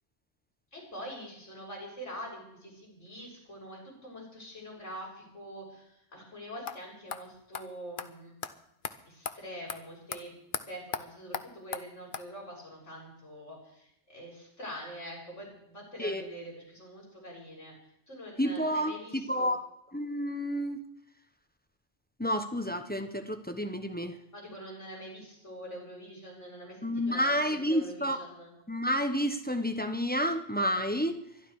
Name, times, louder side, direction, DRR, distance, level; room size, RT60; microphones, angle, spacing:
voice 1, 0.7-8.3 9.1-17.7 18.1-19.5 24.3-28.5, equal, 85° left, -2 dB, 6.8 m, -45 dB
sound 1, 6.7-6.8 7.1-7.2 7.5-7.7 8.0-8.1 8.4-8.5 8.8-8.9 9.3-9.4 9.7-9.8 10.1-10.2 10.5-10.6 10.9-11.0 11.3-11.4 11.7-11.8 12.1-12.2, left 6 dB, 50° left, 0.9 m, -35 dB
voice 2, 16.0-16.3 18.4-19.6 19.9-20.8 22.2-24.2 26.8-28.2 28.7-31.2, equal, 10° left, 6 dB, 1.0 m, -30 dB
23.5 x 11.5 x 4.9 m, 0.76 s
omnidirectional pair, 1.2 m